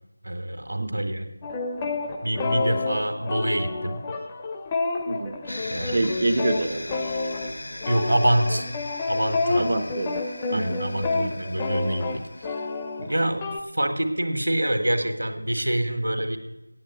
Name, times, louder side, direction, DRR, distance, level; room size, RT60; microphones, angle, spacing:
voice 1, 0.2-1.3 2.2-4.1 5.5-6.1 7.9-8.7 9.1-9.7 10.5-12.7 13.0-16.4, right 1 dB, 80° right, 8 dB, 1.5 m, -26 dB
sound 1, 1.4-13.6, left 3 dB, 15° left, 0.5 m, -29 dB
Mallet percussion, 4.2-6.2, left 1 dB, 85° left, 3.5 m, -49 dB
voice 2, 5.1-5.4 5.8-6.9 9.6-10.8, right 2 dB, 35° right, 4 dB, 0.5 m, -27 dB
sound 2, 5.5-13.1, left 1 dB, 65° left, 0.9 m, -39 dB
8.8 x 7.7 x 9.1 m, 0.97 s
figure-of-eight pair, 170°, 0 cm